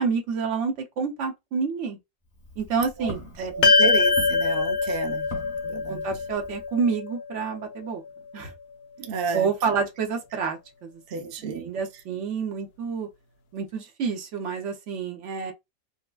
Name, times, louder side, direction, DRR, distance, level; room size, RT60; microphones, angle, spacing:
voice 1, 0.0-2.0 2.6-3.6 5.9-8.0 8.3-8.5 9.3-13.1 13.5-15.5, right 5 dB, 55° right, 0.9 m, -29 dB
Walk footsteps, 2.2-6.8, left 1 dB, 25° left, 1.2 m, -43 dB
voice 2, 3.4-5.3 5.6-6.1 9.0-9.5 11.1-11.7, right 5 dB, 85° right, 0.4 m, -32 dB
sound 1, 3.6-8.1, left 4 dB, 70° left, 1.0 m, -23 dB
4.6 x 2.1 x 2.3 m
omnidirectional pair, 1.7 m